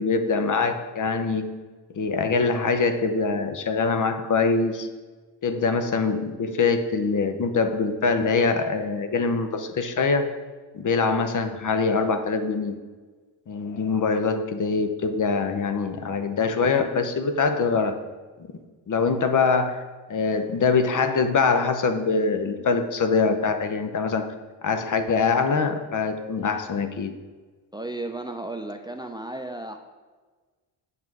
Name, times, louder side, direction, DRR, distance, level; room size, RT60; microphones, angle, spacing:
voice 1, 0.0-1.5 1.9-4.9 5.4-10.3 10.7-12.8 13.5-18.0 18.9-19.8 20.1-24.3 24.6-27.1, left 4 dB, 40° left, 8 dB, 0.8 m, -23 dB
voice 2, 27.7-29.8, right 2 dB, 10° right, 5 dB, 0.5 m, -34 dB
7.6 x 5.6 x 4.7 m, 1.4 s
supercardioid pair, 70°, 46 cm